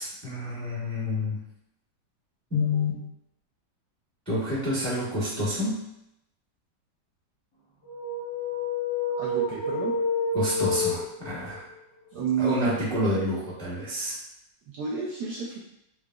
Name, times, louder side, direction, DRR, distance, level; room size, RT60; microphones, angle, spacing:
voice 1, 0.0-1.4 2.5-3.0 4.3-5.8 10.3-11.7 12.4-14.2, left 1 dB, 5° left, -9 dB, 0.8 m, -28 dB
sound 1, 7.8-11.5, left 3 dB, 70° left, 2.1 m, -28 dB
voice 2, 9.2-10.0 12.1-12.8 14.7-15.6, right 5 dB, 75° right, -4 dB, 1.0 m, -29 dB
4.6 x 2.1 x 2.3 m, 0.82 s
omnidirectional pair, 2.2 m